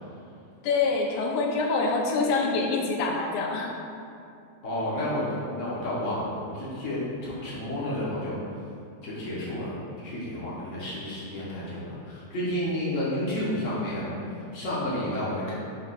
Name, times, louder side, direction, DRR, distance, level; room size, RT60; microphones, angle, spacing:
voice 1, 0.6-3.7, left 3 dB, 90° left, 0 dB, 2.2 m, -25 dB
voice 2, 4.6-8.3 9.0-14.1 14.5-15.5, left 1 dB, 60° left, -8 dB, 0.7 m, -31 dB
6.1 x 3.1 x 5.7 m, 2.5 s
omnidirectional pair, 3.4 m